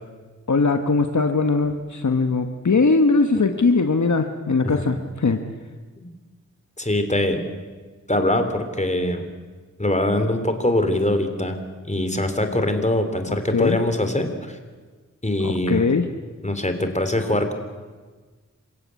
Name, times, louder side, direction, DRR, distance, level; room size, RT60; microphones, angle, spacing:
voice 1, 0.5-5.4 13.3-13.8 15.4-16.1, left 4 dB, 70° left, 7 dB, 1.4 m, -20 dB
voice 2, 6.8-7.4 8.1-9.3 9.8-11.6 11.8-14.6 15.2-15.8 16.4-17.5, left 1 dB, 25° left, 7 dB, 3.4 m, -23 dB
27.5 x 16.5 x 8.4 m, 1.4 s
wide cardioid pair, 45°, 30 cm